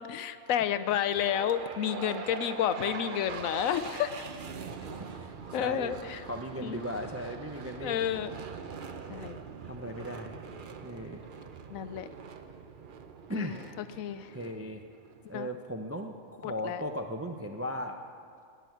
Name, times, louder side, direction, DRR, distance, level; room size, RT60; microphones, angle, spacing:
voice 1, 0.0-4.2 5.5-6.2 6.6-6.9 7.8-8.3 9.1-9.4 11.7-12.1 13.3-13.6 14.0-14.3 15.3-15.5 16.4-16.8, left 10 dB, 80° left, 13 dB, 1.0 m, -31 dB
sound 1, 1.1-15.3, right 5 dB, 45° right, 0.7 m, -43 dB
voice 2, 5.0-5.9 6.2-8.0 9.6-10.4 10.8-11.2 13.3-13.6 14.3-14.8 15.3-18.0, equal, 20° right, 4 dB, 0.3 m, -37 dB
17.0 x 6.2 x 9.2 m, 2.2 s
omnidirectional pair, 1.4 m